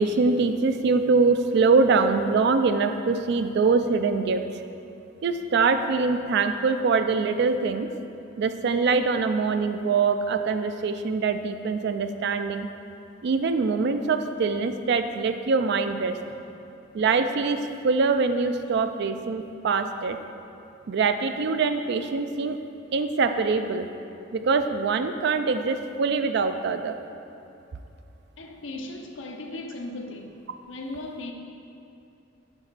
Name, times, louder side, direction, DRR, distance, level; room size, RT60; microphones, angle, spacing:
voice 1, 0.0-4.5 5.2-7.9 8.4-12.7 13.2-16.2 16.9-20.2 20.9-22.6 22.9-23.9 24.3-27.0, right 4 dB, 60° right, 0.4 m, -23 dB
voice 2, 28.4-30.3 30.7-31.3, left 2 dB, 75° left, 0.7 m, -37 dB
7.2 x 5.3 x 4.0 m
head